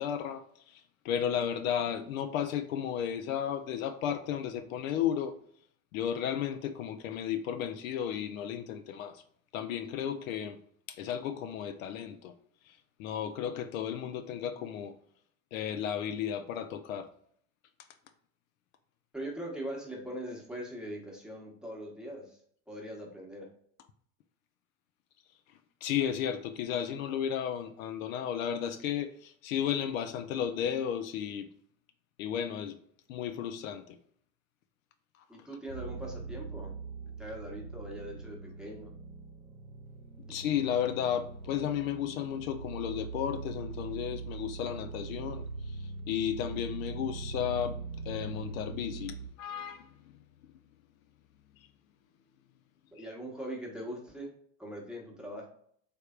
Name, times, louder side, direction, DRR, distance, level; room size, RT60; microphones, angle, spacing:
voice 1, 0.0-5.3 5.9-9.2 9.5-10.6 10.9-12.3 12.7-12.8 13.0-14.9 15.5-17.1 25.8-31.5 32.2-32.8 33.1-34.0 40.3-49.9 51.6-51.7 53.0-53.1, left 9 dB, 70° left, 0.5 m, -34 dB
voice 2, 19.1-22.4 22.7-23.5 35.3-36.7 37.2-38.9 52.9-54.3 54.6-55.5, right 1 dB, ahead, 1.0 m, -41 dB
sound 1, 35.7-49.3, right 4 dB, 70° right, 0.7 m, -42 dB
3.4 x 3.2 x 2.3 m
hypercardioid pair, 80°, 42 cm